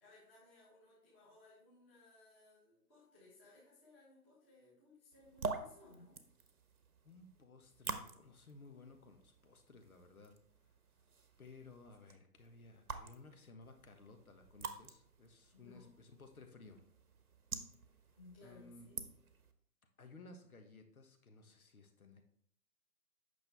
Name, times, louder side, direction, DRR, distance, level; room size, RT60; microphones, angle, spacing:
voice 1, 0.0-6.2 15.5-15.9 18.2-19.1, left 2 dB, 10° left, -9 dB, 1.3 m, -62 dB
sound 1, 5.1-19.5, right 4 dB, 65° right, 1.2 m, -49 dB
voice 2, 7.0-10.4 11.4-16.8 18.4-18.9 20.0-22.2, left 3 dB, 65° left, 5 dB, 1.6 m, -58 dB
8.4 x 6.3 x 3.5 m, 0.64 s
hypercardioid pair, 170°, 47 cm